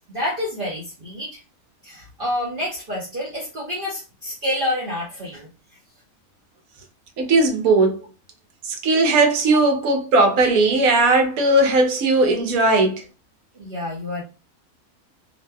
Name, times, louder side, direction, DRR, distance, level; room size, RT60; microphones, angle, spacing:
voice 1, 0.1-1.4 1.8-5.5 13.6-14.2, left 1 dB, 45° right, 0.8 m, -28 dB
voice 2, 7.2-8.0 8.6-13.0, right 2 dB, 75° right, 1.1 m, -18 dB
2.9 x 2.6 x 2.2 m
omnidirectional pair, 1.5 m